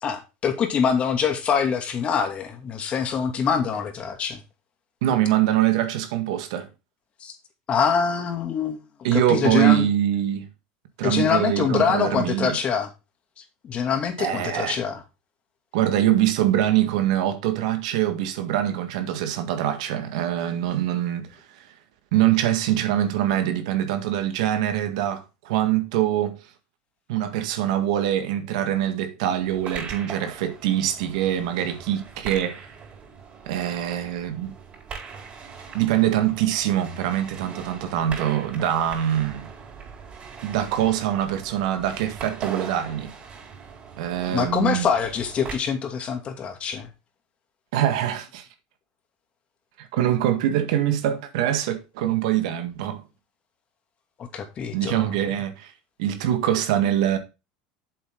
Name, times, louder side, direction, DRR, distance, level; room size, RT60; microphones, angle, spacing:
voice 1, 0.0-4.4 7.2-7.3 7.7-8.8 9.1-9.9 11.0-12.9 13.6-15.0 44.3-46.9 54.2-55.2, left 6 dB, 35° left, 2.4 m, -24 dB
voice 2, 5.0-6.7 9.0-10.5 11.0-12.6 14.2-14.8 15.7-21.7 22.1-26.4 27.1-32.7 33.4-34.5 35.7-39.5 40.4-43.1 44.0-44.9 47.7-48.5 49.8-53.0 54.7-55.7 56.0-57.2, right 12 dB, 80° right, 1.7 m, -24 dB
sound 1, 29.4-45.6, right 6 dB, 35° right, 4.8 m, -40 dB
7.8 x 7.8 x 3.9 m
supercardioid pair, 120°, 3 cm